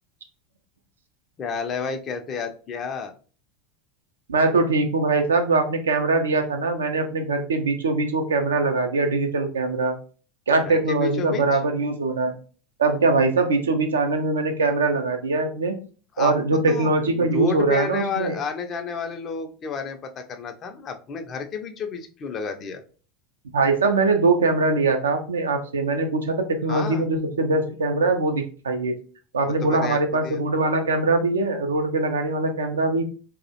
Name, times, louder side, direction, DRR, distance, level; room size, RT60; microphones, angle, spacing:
voice 1, 1.4-3.1 10.6-11.6 16.2-22.8 26.7-27.1 29.4-30.4, left 5 dB, 35° left, 6 dB, 0.4 m, -31 dB
voice 2, 4.3-10.0 10.5-12.3 12.8-15.7 16.2-18.4 23.5-28.9 29.3-33.0, right 3 dB, 80° right, 5 dB, 0.4 m, -22 dB
2.3 x 2.0 x 2.7 m, 0.39 s
figure-of-eight pair, 80°, 0 cm